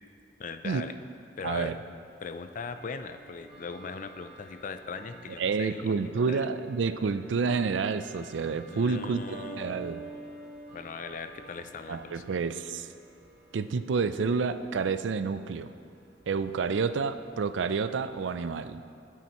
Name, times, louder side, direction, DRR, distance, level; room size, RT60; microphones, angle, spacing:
voice 1, 0.4-0.9 1.4-1.8 2.2-6.0 6.3-6.5 8.7-9.8 10.7-12.2, left 5 dB, 45° left, 9 dB, 0.4 m, -39 dB
voice 2, 1.4-1.8 5.4-9.2 9.6-10.1 11.9-12.9 13.5-15.7 16.3-18.8, right 5 dB, 85° right, 11 dB, 0.4 m, -29 dB
Bell / Tick-tock, 2.1-18.4, right 2 dB, 60° right, 1.5 m, -55 dB
sound 1, 9.3-11.9, right 3 dB, 40° right, 0.8 m, -44 dB
16.5 x 5.8 x 3.0 m, 2.3 s
head